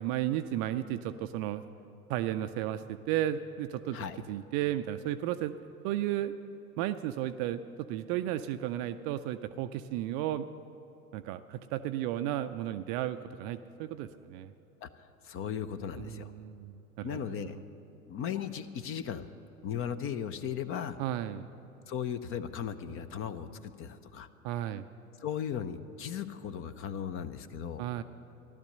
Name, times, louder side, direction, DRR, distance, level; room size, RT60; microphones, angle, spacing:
voice 1, 0.0-1.6 2.1-4.0 4.3-5.6 5.8-6.3 6.8-10.5 11.1-14.5 16.0-17.5 21.0-21.5 24.4-24.9 27.8-28.0, right 12 dB, 35° right, 10 dB, 0.4 m, -34 dB
voice 2, 15.2-16.3 17.0-17.6 18.1-19.3 19.6-21.0 21.9-24.3 25.2-27.8, left 8 dB, 30° left, 13 dB, 0.6 m, -37 dB
14.5 x 12.0 x 6.7 m, 2.9 s
figure-of-eight pair, 85°, 44 cm